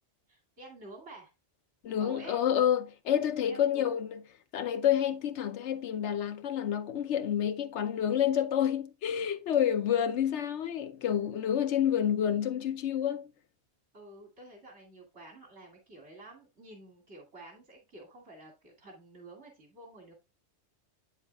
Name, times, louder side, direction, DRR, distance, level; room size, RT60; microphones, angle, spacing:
voice 1, 0.3-1.3 2.0-2.4 3.5-4.0 13.9-20.1, right 2 dB, 75° right, 2.8 m, -50 dB
voice 2, 1.8-4.2 4.5-13.3, left 9 dB, 80° left, 1.0 m, -29 dB
8.8 x 7.1 x 2.3 m
omnidirectional pair, 1.1 m